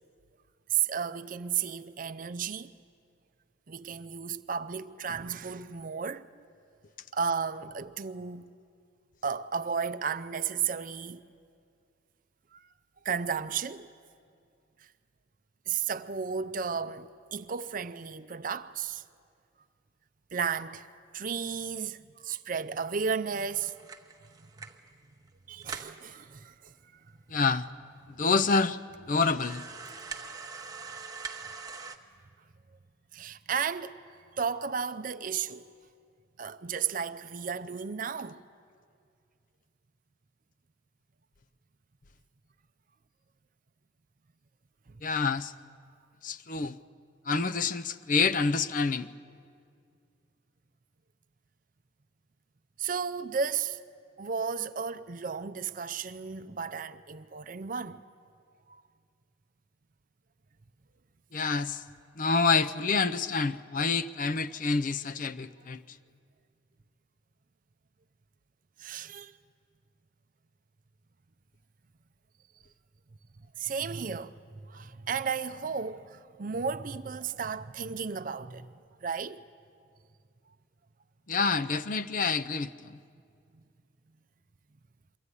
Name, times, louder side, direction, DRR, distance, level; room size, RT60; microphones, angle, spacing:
voice 1, 0.7-2.7 3.7-6.4 7.1-8.5 9.2-11.2 12.5-12.6 13.0-13.9 15.7-19.0 20.3-20.9 21.1-23.7 25.5-26.7 33.1-34.0 34.3-35.7 36.4-38.4 52.8-53.8 54.2-58.0 58.7-58.8 68.8-69.4 73.6-78.7 79.0-79.4, right 6 dB, 45° right, 0.5 m, -33 dB
sound 1, 23.3-24.9 25.3-25.4 25.6-26.0 26.7-26.8 27.0-27.1 27.8-27.9 28.4-28.5 29.2-32.0, right 5 dB, 20° right, 0.9 m, -43 dB
voice 2, 27.3-27.7 28.2-28.8 29.1-29.6 45.0-45.5 46.2-46.8 47.3-49.1 61.3-61.8 62.2-66.0 81.3-83.0, left 4 dB, 45° left, 0.5 m, -27 dB
23.0 x 15.0 x 9.8 m
head